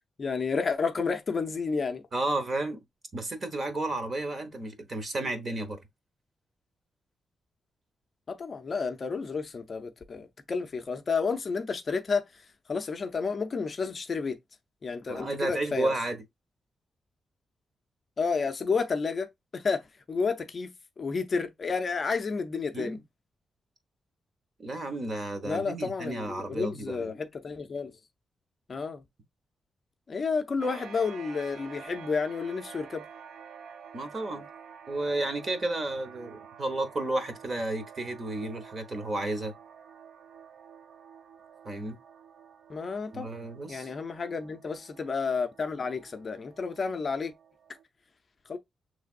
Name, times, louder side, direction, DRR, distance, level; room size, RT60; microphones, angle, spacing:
voice 1, 0.2-2.0 8.3-12.2 12.7-14.4 14.8-15.9 18.2-19.3 19.5-19.8 20.1-20.7 21.0-23.0 25.4-27.9 28.7-29.0 30.1-33.0 42.7-43.3 43.7-47.3 48.5-48.6, left 5 dB, 35° left, 0.5 m, -31 dB
voice 2, 2.1-2.8 3.1-5.8 15.1-16.2 22.7-23.0 24.6-27.1 33.9-34.5 34.9-39.5 41.6-42.0 43.1-43.9, right 2 dB, 30° right, 1.0 m, -32 dB
sound 1, 30.6-47.8, right 7 dB, 80° right, 0.7 m, -49 dB
6.7 x 3.2 x 2.4 m
wide cardioid pair, 175°, 0 cm